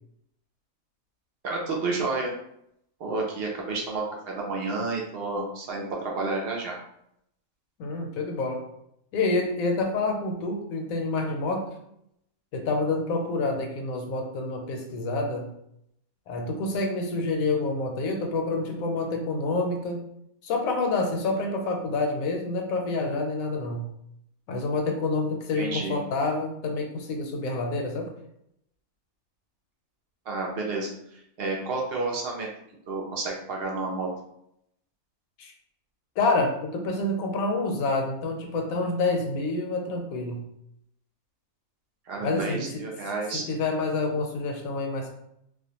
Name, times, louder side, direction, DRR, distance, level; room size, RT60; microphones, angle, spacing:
voice 1, 1.4-2.3 3.0-6.8 25.6-26.0 30.3-32.5 32.9-34.1 42.1-43.4, right 3 dB, 60° right, -1 dB, 0.6 m, -30 dB
voice 2, 7.8-8.7 9.1-11.8 12.5-15.5 16.3-20.0 20.4-23.9 24.5-28.1 35.4-35.5 36.2-40.5 42.2-42.8 43.3-45.1, left 3 dB, 75° left, 3 dB, 1.0 m, -28 dB
2.4 x 2.2 x 2.8 m, 0.75 s
omnidirectional pair, 1.5 m